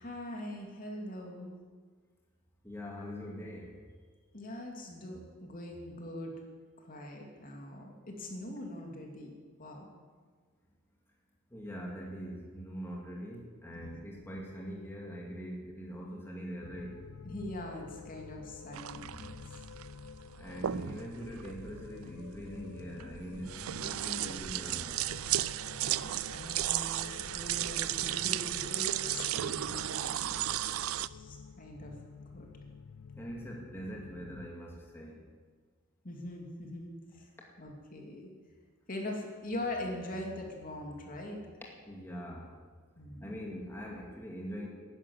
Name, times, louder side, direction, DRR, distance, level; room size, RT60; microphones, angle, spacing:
voice 1, 0.0-1.5 3.1-3.2 4.3-6.3 6.8-9.3 9.6-9.9 13.7-13.9 17.2-19.6 25.9-31.9 32.2-32.5 36.0-37.3 37.6-38.3 38.9-41.5 43.0-43.5, left 1 dB, 40° left, 1 dB, 2.7 m, -42 dB
voice 2, 2.6-3.8 11.5-17.0 20.4-25.0 33.1-35.2 41.9-42.5 43.2-44.7, equal, 10° left, -2 dB, 2.2 m, -42 dB
sound 1, 16.6-34.5, left 6 dB, 75° left, 0.4 m, -50 dB
sound 2, 18.7-31.1, right 13 dB, 90° right, 0.4 m, -35 dB
13.0 x 11.0 x 9.4 m, 1.5 s
head